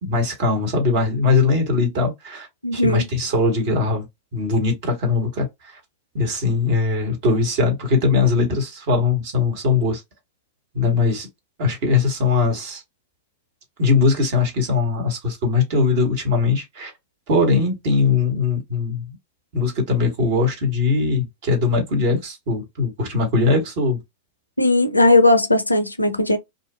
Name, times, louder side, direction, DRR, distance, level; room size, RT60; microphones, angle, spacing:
voice 1, 0.0-2.5 2.7-4.0 4.3-5.8 6.1-10.0 10.7-11.3 11.6-12.8 13.8-16.9 17.3-19.1 19.5-24.0, left 4 dB, 50° right, 1.2 m, -20 dB
voice 2, 2.6-3.1 24.6-26.4, left 2 dB, 85° left, 0.4 m, -17 dB
2.7 x 2.2 x 2.2 m
figure-of-eight pair, 90°, 0 cm